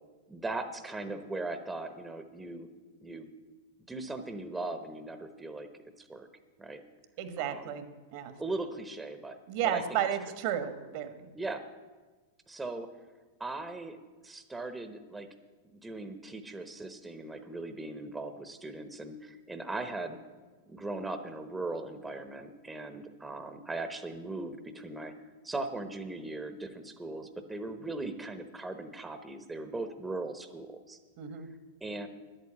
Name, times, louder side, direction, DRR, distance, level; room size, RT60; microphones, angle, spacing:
voice 1, 0.3-2.7 3.0-3.3 3.9-5.7 6.1-6.3 6.6-6.8 7.4-7.7 8.4-9.4 9.6-10.0 11.3-11.6 12.5-12.9 13.4-14.0 14.2-15.3 15.7-20.2 20.7-25.1 25.4-31.0 31.8-32.1, right 2 dB, 10° right, 8 dB, 1.0 m, -39 dB
voice 2, 7.2-7.9 8.1-8.3 9.5-11.1 31.2-31.5, right 9 dB, 55° right, 10 dB, 1.3 m, -32 dB
10.5 x 8.7 x 8.6 m, 1.3 s
hypercardioid pair, 110°, 0 cm